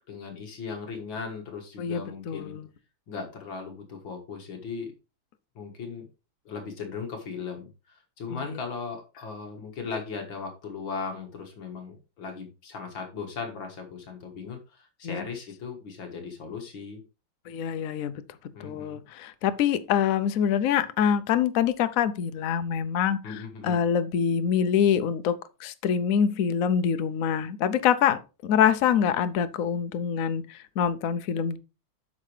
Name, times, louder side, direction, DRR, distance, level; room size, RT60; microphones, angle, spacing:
voice 1, 0.1-2.6 3.1-4.9 5.6-6.1 6.5-17.0 18.5-19.0 23.2-23.8, left 5 dB, 65° left, 2.3 m, -37 dB
voice 2, 1.8-2.7 8.3-8.6 15.0-15.2 17.5-18.2 18.6-23.3 23.6-31.6, left 8 dB, 85° left, 0.7 m, -25 dB
8.4 x 6.3 x 3.2 m
omnidirectional pair, 2.3 m